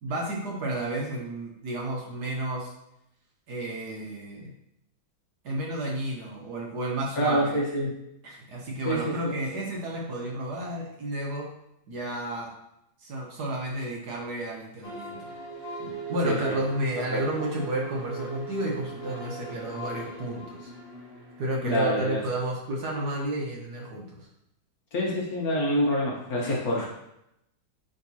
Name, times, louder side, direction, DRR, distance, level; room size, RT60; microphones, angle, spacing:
voice 1, 0.0-2.7 3.5-4.5 5.4-7.6 8.2-11.5 11.9-12.5 13.0-15.3 15.8-20.7 21.4-24.3, right 1 dB, 55° right, -2 dB, 1.5 m, -32 dB
voice 2, 7.2-7.9 8.8-9.3 16.2-16.6 17.1-17.2 21.6-22.2 24.9-26.9, equal, 50° left, -3 dB, 1.4 m, -26 dB
sound 1, 14.8-21.8, right 3 dB, 20° right, 1.9 m, -38 dB
10.0 x 3.9 x 2.8 m, 0.82 s
omnidirectional pair, 2.2 m